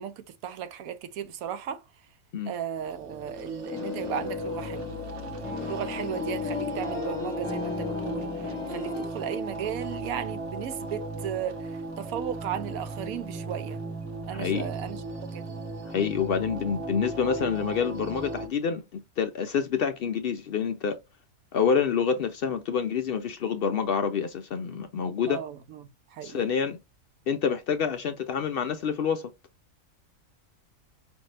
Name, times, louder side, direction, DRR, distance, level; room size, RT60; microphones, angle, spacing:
voice 1, 0.0-1.8 2.5-4.9 5.6-13.8 14.3-15.0 15.3-15.6 25.3-26.4, right 9 dB, 85° right, 1.1 m, -35 dB
sound 1, 2.8-18.5, right 2 dB, 60° right, 1.2 m, -36 dB
sound 2, 3.7-9.1, left 6 dB, 20° left, 0.8 m, -35 dB
voice 2, 14.3-14.7 15.8-21.0 21.5-25.4 26.2-26.8 27.3-29.3, left 7 dB, 75° left, 0.5 m, -27 dB
5.1 x 2.6 x 3.2 m
omnidirectional pair, 1.5 m